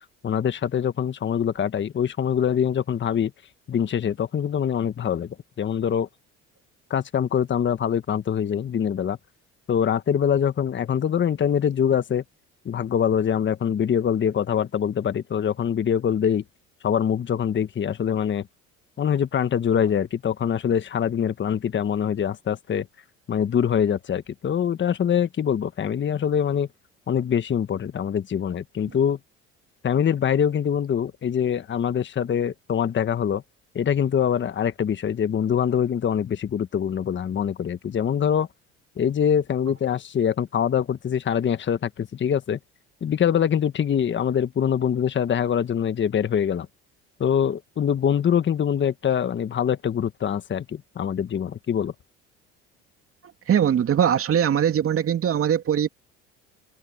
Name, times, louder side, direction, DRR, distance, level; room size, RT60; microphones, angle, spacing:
voice 1, 0.2-3.3 3.7-5.3 5.6-6.1 6.9-9.2 9.7-12.2 12.6-16.4 16.8-18.5 19.0-22.9 23.3-26.7 27.1-29.2 29.8-33.4 33.7-38.5 39.0-42.6 43.0-46.7 47.2-51.9, left 8 dB, 40° left, 1.4 m, -24 dB
voice 2, 53.5-55.9, right 9 dB, 45° right, 2.7 m, -21 dB
supercardioid pair, 75°, 31 cm